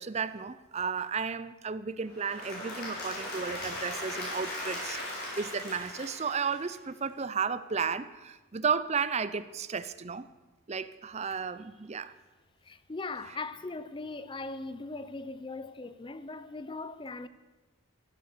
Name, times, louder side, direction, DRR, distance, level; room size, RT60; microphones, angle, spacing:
voice 1, 0.0-10.3 10.7-12.1, right 5 dB, 30° right, 0.5 m, -33 dB
Applause / Crowd, 2.1-7.0, left 1 dB, 50° left, 6.0 m, -38 dB
voice 2, 12.6-17.3, left 3 dB, 25° left, 0.5 m, -39 dB
15.0 x 12.5 x 6.7 m
head